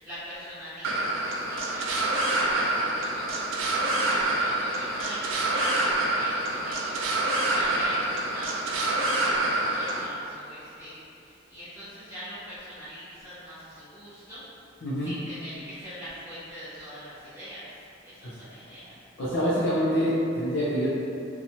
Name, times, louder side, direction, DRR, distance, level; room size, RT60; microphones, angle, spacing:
voice 1, 0.0-14.4 15.0-18.9, equal, 15° right, -16 dB, 0.6 m, -42 dB
sound 1, 0.8-10.0, right 2 dB, 80° right, 0.4 m, -27 dB
voice 2, 14.8-15.1 18.2-18.3 19.2-20.9, equal, 70° left, -10 dB, 0.5 m, -26 dB
2.8 x 2.3 x 2.7 m, 2.7 s
head